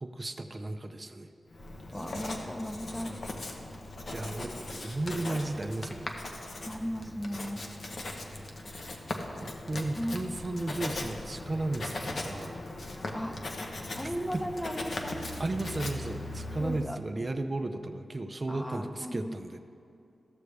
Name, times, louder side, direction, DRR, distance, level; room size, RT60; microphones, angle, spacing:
voice 1, 0.0-1.3 4.1-6.1 8.3-8.5 9.4-12.6 14.3-14.4 15.4-19.6, right 2 dB, 35° right, 7 dB, 0.5 m, -34 dB
Writing, 1.5-16.9, left 2 dB, 60° left, 0.8 m, -39 dB
voice 2, 1.9-3.2 6.6-7.6 10.0-10.2 13.1-13.4 13.9-15.2 16.6-17.0 18.5-19.4, equal, 10° left, 5 dB, 0.8 m, -36 dB
14.0 x 6.7 x 3.3 m, 2.6 s
cardioid pair, 75°, 0 cm